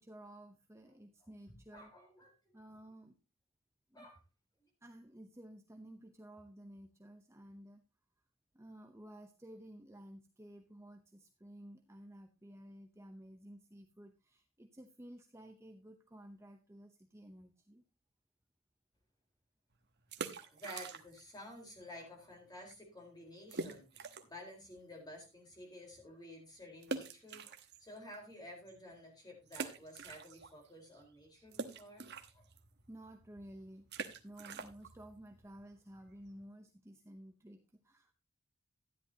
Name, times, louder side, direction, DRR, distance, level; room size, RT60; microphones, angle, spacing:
voice 1, 0.0-1.9 2.5-3.2 3.9-4.1 4.8-7.8 8.5-17.8 32.9-33.9 34.2-38.1, right 1 dB, 15° right, 4 dB, 0.7 m, -54 dB
voice 2, 1.7-2.6 3.9-4.2 4.6-4.7 20.4-32.5, left 1 dB, 20° left, 1 dB, 4.1 m, -52 dB
sound 1, 20.0-21.4 21.6-21.7 22.3-22.4 22.7-22.8 23.5-24.4 24.9-25.0 26.8-28.2 28.7-28.8 29.5-30.7 30.9-36.4, right 4 dB, 50° right, 1.1 m, -45 dB
12.5 x 10.5 x 2.8 m, 0.28 s
head